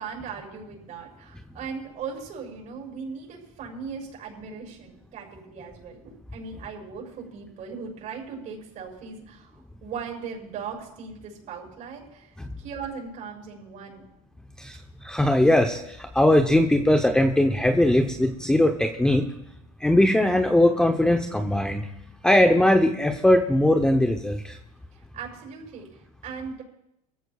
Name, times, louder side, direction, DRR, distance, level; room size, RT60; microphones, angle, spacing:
voice 1, 0.0-14.0 24.9-26.6, right 5 dB, 45° right, -1 dB, 7.1 m, -38 dB
voice 2, 14.6-19.2 19.8-21.8 22.2-24.6, left 1 dB, 5° left, 4 dB, 0.8 m, -20 dB
23.0 x 15.0 x 2.4 m, 0.83 s
supercardioid pair, 125°, 18 cm